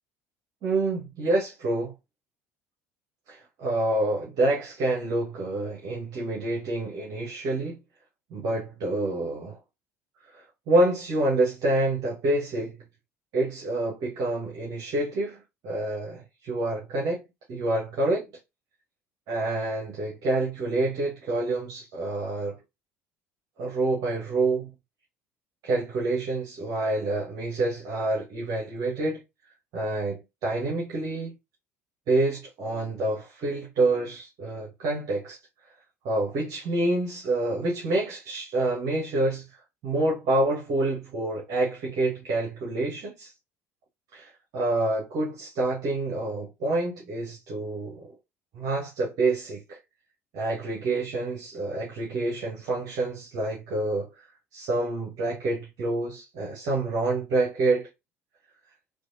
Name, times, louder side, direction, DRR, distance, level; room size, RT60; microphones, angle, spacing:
voice 1, 0.6-1.9 3.3-7.8 8.3-9.6 10.3-12.8 13.3-17.2 17.5-18.3 19.3-22.6 23.6-24.7 25.6-29.2 29.7-31.3 32.1-35.4 36.0-39.5 39.8-43.3 44.1-48.1 48.5-49.8 50.3-54.3 54.5-57.9, right 2 dB, 55° right, 1.2 m, -27 dB
3.3 x 2.6 x 2.5 m
hypercardioid pair, 65°, 7 cm